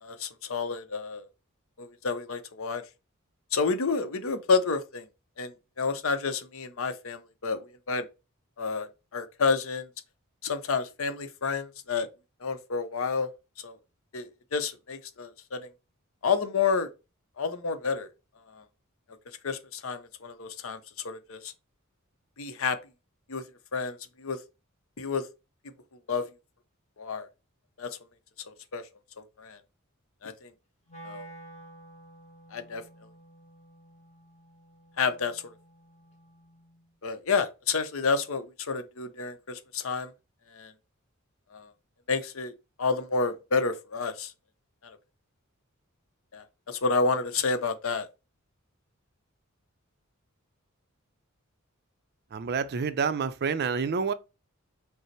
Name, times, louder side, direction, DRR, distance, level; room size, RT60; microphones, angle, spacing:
voice 1, 0.0-1.2 1.8-2.8 3.5-5.0 5.4-8.0 8.6-9.9 10.4-12.1 12.4-13.3 13.6-13.8 14.1-15.7 16.2-16.9 17.4-18.1 18.5-18.6 19.4-20.8 21.0-21.5 22.4-22.8 23.3-23.4 23.7-24.4 25.0-25.2 26.1-26.2 27.0-27.3 27.8-27.9 28.5-28.8 29.2-29.6 30.2-30.5 31.0-31.3 32.5-32.8 35.0-35.4 37.0-40.1 40.5-40.7 41.5-41.7 42.1-42.5 42.8-44.3 44.8-45.0 46.3-48.1, left 4 dB, 70° left, 0.7 m, -30 dB
Wind instrument woodwind instrument, 30.9-37.0, right 1 dB, 30° left, 1.1 m, -51 dB
voice 2, 52.3-54.1, right 5 dB, 50° right, 0.4 m, -28 dB
5.3 x 2.0 x 4.5 m
head